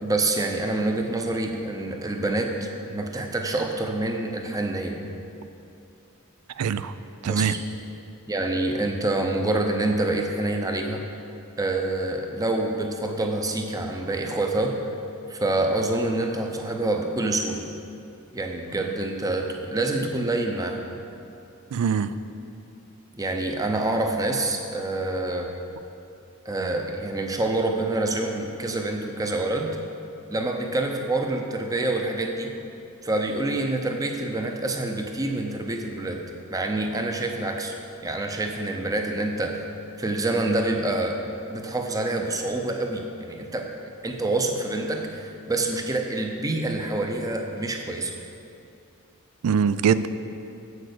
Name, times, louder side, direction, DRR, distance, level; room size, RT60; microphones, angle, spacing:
voice 1, 0.0-2.5 2.9-5.0 7.2-7.5 8.3-11.0 11.6-14.9 15.3-17.7 18.3-20.8 23.1-25.5 26.5-29.8 30.3-32.5 33.0-36.2 36.5-37.7 38.0-39.6 40.0-41.2 41.5-43.7 44.0-48.2, right 2 dB, 15° right, 3 dB, 0.6 m, -26 dB
voice 2, 6.6-6.9 7.2-7.5 21.7-22.1 49.4-50.1, right 7 dB, 85° right, 13 dB, 0.4 m, -22 dB
7.7 x 6.5 x 6.6 m, 2.7 s
head